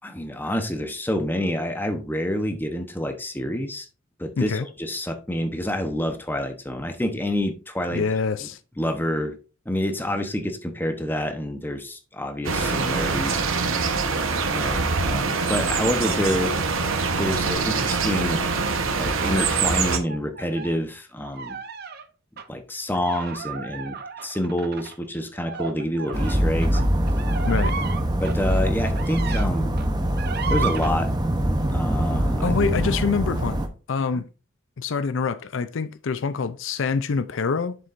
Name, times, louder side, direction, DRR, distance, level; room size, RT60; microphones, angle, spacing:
voice 1, 0.0-3.9 4.2-8.0 8.8-9.3 9.7-13.4 14.5-16.5 17.2-18.4 19.0-21.6 22.5-24.0 24.2-26.8 28.2-29.7 30.5-31.1 31.7-32.4, left 1 dB, 10° left, 0.9 m, -27 dB
voice 2, 7.9-8.6 27.4-27.7 32.4-33.6 33.9-34.3 34.8-37.8, left 5 dB, 70° left, 0.5 m, -25 dB
sound 1, 12.4-20.0, right 4 dB, 90° right, 1.0 m, -24 dB
sound 2, 19.1-20.8 21.2-22.0 22.4-22.5 22.9-29.5 29.8-30.9, right 5 dB, 50° right, 0.7 m, -34 dB
sound 3, 26.1-33.7, equal, 20° right, 0.8 m, -23 dB
7.6 x 6.8 x 2.5 m
head